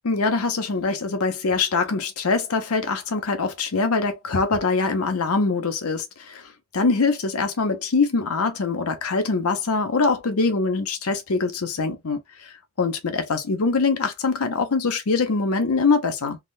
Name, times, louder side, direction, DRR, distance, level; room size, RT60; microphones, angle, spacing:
voice 1, 0.0-16.4, left 4 dB, 80° left, 0.7 m, -23 dB
3.5 x 2.2 x 2.4 m
head